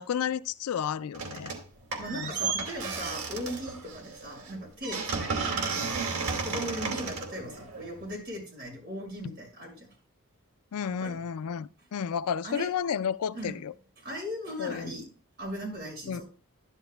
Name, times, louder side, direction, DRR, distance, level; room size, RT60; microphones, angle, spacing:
voice 1, 0.0-1.5 2.1-2.5 9.2-9.3 10.7-13.7 14.6-14.9 16.1-16.2, left 7 dB, 75° left, 0.4 m, -32 dB
sound 1, 1.1-1.7 1.9-8.1, right 5 dB, 85° right, 2.5 m, -33 dB
voice 2, 2.0-6.0 6.4-9.9 11.0-11.2 12.4-12.7 13.3-13.6 14.0-15.1 15.4-16.2, equal, 50° right, 6.2 m, -38 dB
12.5 x 11.5 x 2.3 m
head